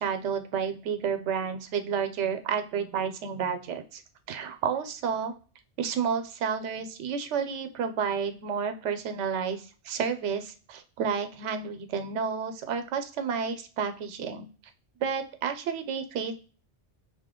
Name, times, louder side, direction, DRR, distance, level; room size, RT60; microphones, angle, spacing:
voice 1, 0.0-4.0 4.3-5.3 5.8-14.4 15.0-16.3, right 6 dB, 85° right, 8 dB, 0.9 m, -31 dB
2.7 x 2.7 x 3.5 m, 0.38 s
omnidirectional pair, 1.2 m